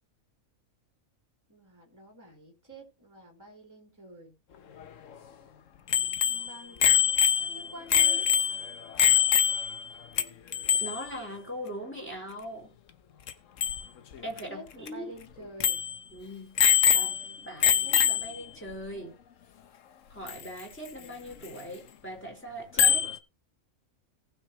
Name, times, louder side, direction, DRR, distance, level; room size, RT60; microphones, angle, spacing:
voice 1, 1.5-4.3 5.9-8.3 14.5-15.8 16.9-18.3, equal, 10° right, 1 dB, 3.2 m, -49 dB
Bicycle bell, 5.9-9.9 10.2-10.3 10.5-11.0 13.3-13.4 13.6-13.8 14.4-14.5 14.9-15.0 15.6-16.0 16.6-17.3 17.6-18.4 20.3-20.4 22.8-23.2, left 9 dB, 65° left, 1.2 m, -23 dB
voice 2, 10.8-12.7 14.2-15.1 16.1-16.6 16.9-17.1 17.4-19.2 20.1-23.1, equal, 10° left, 0 dB, 4.6 m, -40 dB
18.5 x 6.3 x 3.0 m, 0.26 s
omnidirectional pair, 1.5 m